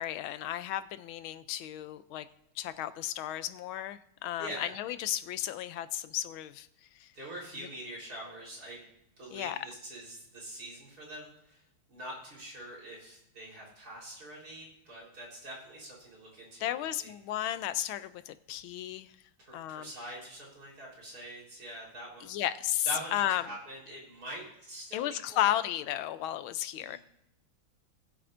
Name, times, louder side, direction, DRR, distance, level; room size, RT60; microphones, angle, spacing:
voice 1, 0.0-2.3 2.6-6.7 6.9-7.1 9.3-9.6 16.6-19.1 19.5-19.9 22.2-23.4 24.9-27.0, left 12 dB, 85° left, 13 dB, 1.4 m, -34 dB
voice 2, 4.4-4.7 7.1-8.8 9.2-11.6 11.9-17.1 19.4-22.4 22.8-25.6 26.8-27.0, right 1 dB, 45° right, -4 dB, 4.4 m, -44 dB
19.5 x 7.8 x 2.6 m, 0.82 s
omnidirectional pair, 2.3 m